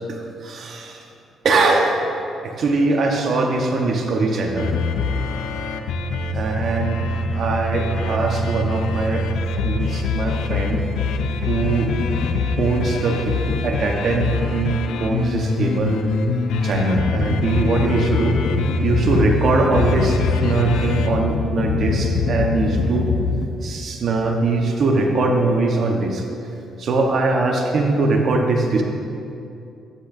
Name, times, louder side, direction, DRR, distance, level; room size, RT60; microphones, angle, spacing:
voice 1, 0.1-1.0 1.4-2.0 2.4-4.7 6.3-7.0 7.3-9.3 9.6-10.8 11.5-11.9 12.6-16.0 16.6-18.4 18.8-23.1 23.6-26.2 26.8-28.8, right 3 dB, 60° right, 1 dB, 1.2 m, -21 dB
sound 1, 4.6-23.5, left 3 dB, 85° left, 0.6 m, -23 dB
12.5 x 10.5 x 2.7 m, 2.6 s
cardioid pair, 90°, 0 cm